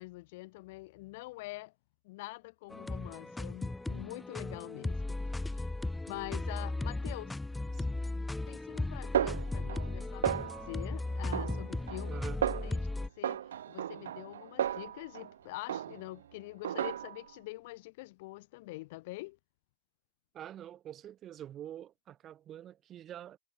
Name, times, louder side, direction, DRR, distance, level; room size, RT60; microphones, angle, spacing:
voice 1, 0.0-1.7 2.0-5.2 5.4-5.7 6.1-7.4 8.5-19.4, left 21 dB, 55° left, 3.4 m, -45 dB
sound 1, 2.7-13.1, left 2 dB, 5° left, 0.7 m, -36 dB
Snare drum, 9.1-10.0 10.2-10.8 11.3-12.1 12.4-12.8 13.2-15.3 15.7-16.2 16.6-17.3, right 10 dB, 70° right, 0.8 m, -34 dB
voice 2, 12.1-12.4 20.3-23.4, right 11 dB, 30° right, 7.1 m, -46 dB
hypercardioid pair, 105°, 0 cm